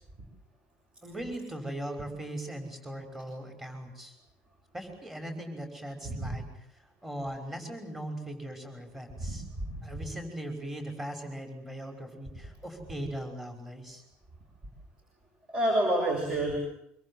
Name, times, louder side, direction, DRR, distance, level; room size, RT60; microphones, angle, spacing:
voice 1, 1.0-4.1 4.7-6.4 6.7-9.4 9.8-14.0, right 1 dB, 10° right, 5 dB, 6.0 m, -39 dB
voice 2, 9.2-10.0 15.5-16.6, right 1 dB, 30° right, 3 dB, 6.9 m, -29 dB
25.5 x 24.5 x 7.5 m, 0.74 s
cardioid pair, 160°, 4 cm